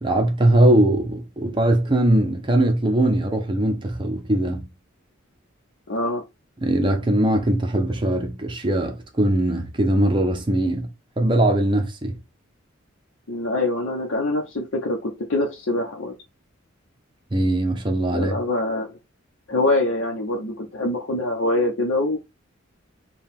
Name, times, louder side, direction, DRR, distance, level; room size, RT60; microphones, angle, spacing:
voice 1, 0.0-4.7 6.6-10.9 11.2-12.2 17.3-18.3, right 1 dB, 25° right, 0.6 m, -20 dB
voice 2, 5.9-6.2 13.3-16.1 18.1-19.0 19.5-22.2, left 2 dB, 70° left, 0.8 m, -24 dB
4.6 x 2.3 x 3.5 m
head